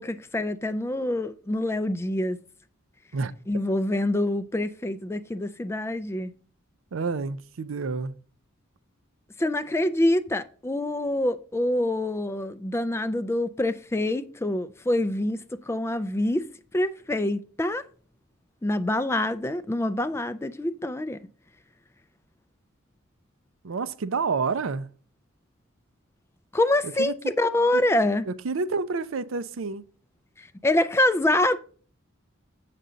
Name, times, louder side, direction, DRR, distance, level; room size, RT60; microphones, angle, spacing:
voice 1, 0.0-2.4 3.5-6.3 9.4-17.8 18.6-21.2 26.5-28.3 30.4-31.6, left 1 dB, 10° left, 0.3 m, -26 dB
voice 2, 6.9-8.1 23.6-24.9 26.8-27.1 27.7-27.8 28.3-29.8, right 4 dB, 65° right, 0.5 m, -29 dB
7.4 x 6.8 x 3.8 m
head